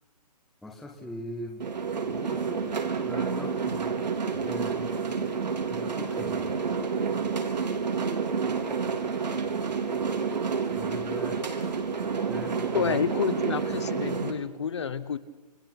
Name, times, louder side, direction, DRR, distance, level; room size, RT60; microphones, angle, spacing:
voice 1, 0.6-1.6 2.1-3.9 4.3-4.9 5.7-6.8 10.7-11.4 12.3-13.0 13.3-13.4, left 1 dB, ahead, -1 dB, 0.7 m, -41 dB
sound 1, 1.6-14.3, right 5 dB, 90° right, 4.2 m, -29 dB
voice 2, 12.7-15.2, left 6 dB, 40° left, 14 dB, 1.3 m, -29 dB
28.5 x 22.0 x 6.0 m, 1.1 s
hypercardioid pair, 175°, 21 cm